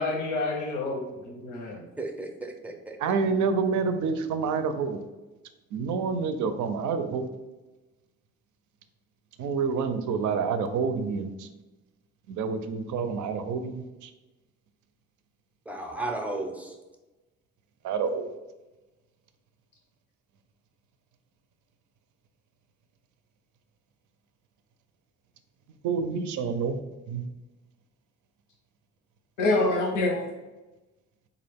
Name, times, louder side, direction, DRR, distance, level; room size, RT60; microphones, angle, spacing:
voice 1, 0.0-1.8 29.4-30.2, left 2 dB, 85° left, -3 dB, 0.8 m, -27 dB
voice 2, 2.0-3.0 15.7-16.7, right 2 dB, 5° right, 3 dB, 0.5 m, -34 dB
voice 3, 3.0-5.0 5.7-7.2 9.4-11.5 12.3-14.1 17.8-18.3 25.8-26.8 27.1-27.2, right 5 dB, 75° right, 9 dB, 0.5 m, -28 dB
3.8 x 2.4 x 3.4 m, 1.1 s
cardioid pair, 90°, 30 cm